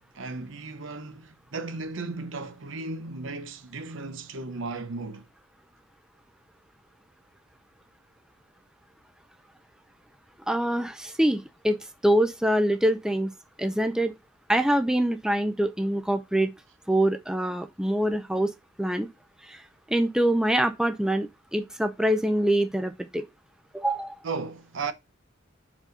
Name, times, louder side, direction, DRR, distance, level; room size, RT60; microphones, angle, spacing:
voice 1, 0.1-5.3 24.2-24.9, right 3 dB, 70° right, 0.7 m, -35 dB
voice 2, 10.5-13.3 13.6-14.1 14.5-16.5 16.9-18.5 18.8-19.1 19.5-19.6 19.9-23.2 23.7-24.1, right 1 dB, 5° right, 0.5 m, -25 dB
5.1 x 5.0 x 3.8 m
head